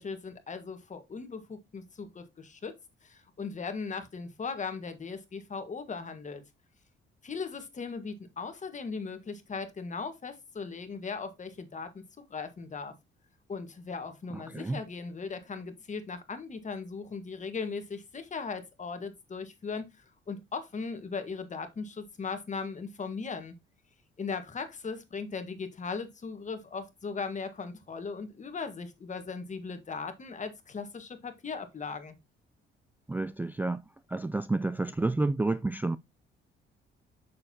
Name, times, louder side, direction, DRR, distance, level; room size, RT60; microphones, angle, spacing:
voice 1, 0.0-6.4 7.2-12.0 12.3-12.9 13.5-23.5 24.2-32.2, left 5 dB, 40° left, 1.6 m, -38 dB
voice 2, 14.3-14.8 33.1-33.8 34.1-36.0, right 2 dB, 10° right, 0.3 m, -30 dB
6.8 x 6.6 x 2.8 m
cardioid pair, 90°, 20 cm